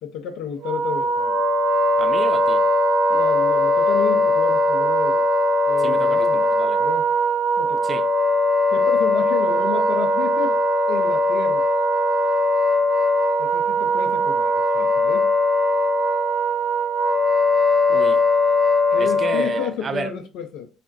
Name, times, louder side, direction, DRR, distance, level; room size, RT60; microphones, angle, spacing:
voice 1, 0.0-1.4 3.1-5.2 5.7-6.5 6.8-7.1 7.6-7.8 8.7-10.6 10.9-11.7 13.4-15.3 18.9-20.7, left 8 dB, 55° left, 0.4 m, -31 dB
Wind instrument woodwind instrument, 0.6-19.7, left 1 dB, 65° right, 1.1 m, -20 dB
voice 2, 2.0-2.6 5.8-6.8 7.9-8.0 17.9-18.2 19.0-20.1, right 5 dB, 35° right, 0.4 m, -31 dB
3.3 x 2.1 x 2.6 m
figure-of-eight pair, 55°, 0 cm